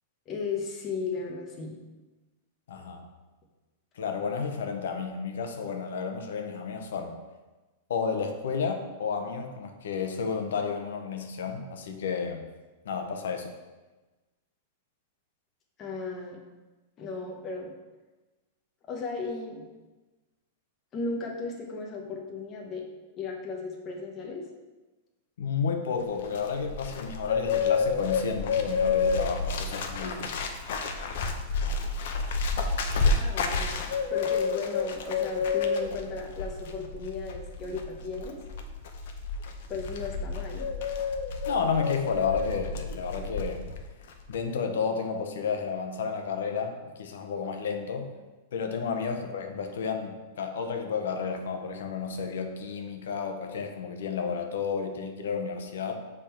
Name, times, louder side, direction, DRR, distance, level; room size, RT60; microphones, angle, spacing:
voice 1, 0.3-1.7 15.8-16.4 17.0-17.7 18.9-19.7 20.9-22.8 23.2-24.5 33.1-38.4 39.7-40.7 48.8-48.9, left 4 dB, 20° left, -1 dB, 0.8 m, -35 dB
voice 2, 2.7-3.0 4.0-7.1 7.9-12.4 12.8-13.5 25.4-30.4 41.5-43.7 44.3-48.1 48.5-55.9, left 6 dB, 85° left, 5 dB, 0.8 m, -31 dB
Bird, 26.0-43.8 44.1-44.4, left 4 dB, 55° left, 0.7 m, -30 dB
7.2 x 3.6 x 4.4 m, 1.2 s
supercardioid pair, 175°, 0 cm